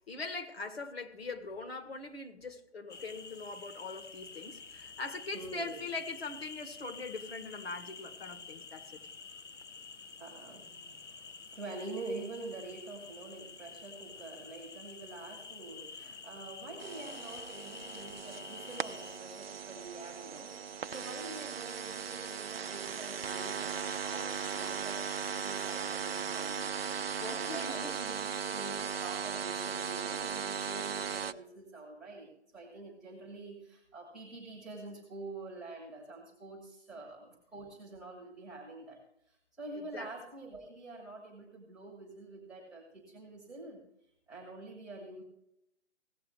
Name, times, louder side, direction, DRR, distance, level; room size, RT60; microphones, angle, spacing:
voice 1, 0.1-9.0 27.2-27.9 39.7-40.1, left 3 dB, 55° left, 1.4 m, -42 dB
sound 1, 2.9-19.2, left 5 dB, 75° left, 0.8 m, -49 dB
voice 2, 5.3-5.8 10.2-43.8 44.3-45.2, right 2 dB, ahead, 0.7 m, -46 dB
sound 2, 16.8-31.3, right 7 dB, 55° right, 0.5 m, -37 dB
16.5 x 7.6 x 3.2 m
figure-of-eight pair, 150°, 35 cm